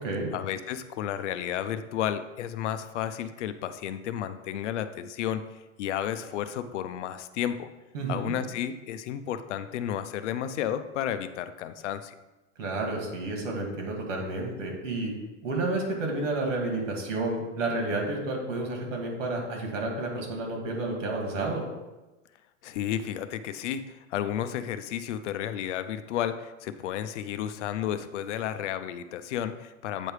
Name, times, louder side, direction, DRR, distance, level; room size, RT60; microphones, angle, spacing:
voice 1, 0.3-5.4 5.8-7.7 8.1-12.1 22.6-30.1, left 10 dB, 70° left, 11 dB, 0.6 m, -32 dB
voice 2, 7.9-8.3 12.6-15.1 15.4-21.6, right 2 dB, 85° right, 0 dB, 2.3 m, -30 dB
8.6 x 3.2 x 4.8 m, 1.1 s
supercardioid pair, 165°, 37 cm